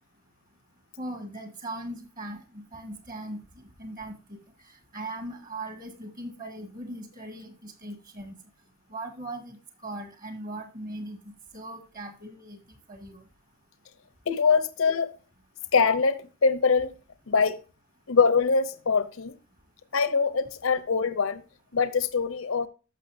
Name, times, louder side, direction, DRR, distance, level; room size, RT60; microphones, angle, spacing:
voice 1, 1.0-3.4 3.8-4.4 4.9-8.3 8.9-12.6 12.9-13.2, right 1 dB, 40° right, 2.1 m, -39 dB
voice 2, 14.3-15.1 15.7-16.9 17.3-17.6 18.1-19.3 19.9-21.4 21.7-22.7, left 5 dB, 70° left, 0.7 m, -23 dB
13.5 x 5.9 x 2.6 m
head